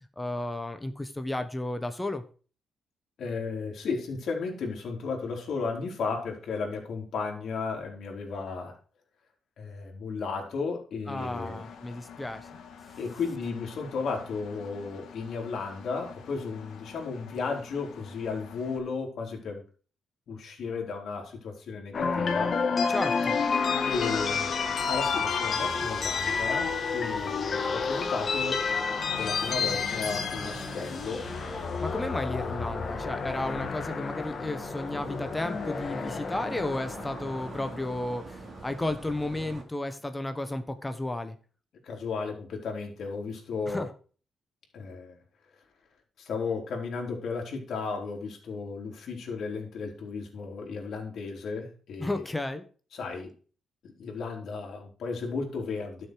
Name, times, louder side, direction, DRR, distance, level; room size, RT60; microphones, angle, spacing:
voice 1, 0.2-2.2 11.1-12.5 22.9-23.4 31.8-41.4 43.7-43.9 52.0-52.6, left 2 dB, 10° left, 9 dB, 1.0 m, -33 dB
voice 2, 3.2-8.8 9.6-11.6 13.0-19.6 20.3-22.6 23.9-24.5 24.9-28.6 29.2-31.3 41.8-43.9 44.7-45.2 46.2-52.2 52.9-53.3 53.8-56.1, left 4 dB, 65° left, 1 dB, 3.8 m, -34 dB
Engine, 11.2-18.8, left 6 dB, 80° left, 1.9 m, -48 dB
sound 1, 21.9-38.1, left 5 dB, 45° left, 1.6 m, -30 dB
sound 2, 23.9-39.6, right 3 dB, 45° right, 3.0 m, -44 dB
12.0 x 6.8 x 4.6 m, 0.38 s
cardioid pair, 115°, 0 cm